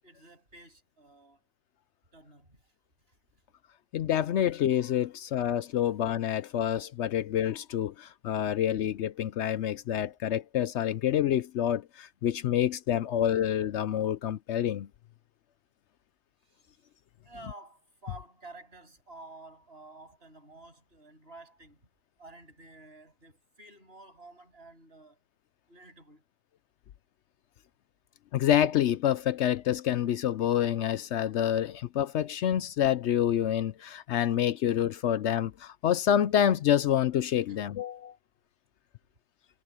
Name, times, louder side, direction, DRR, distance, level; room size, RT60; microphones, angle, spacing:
voice 1, 0.0-1.5 2.1-2.7 3.1-3.2 16.4-16.8 17.2-21.9 22.2-25.2 25.7-26.2 37.5-37.6, right 2 dB, 50° right, 8.4 m, -51 dB
voice 2, 3.9-14.9 28.3-38.1, left 10 dB, 70° left, 0.9 m, -27 dB
omnidirectional pair, 1.3 m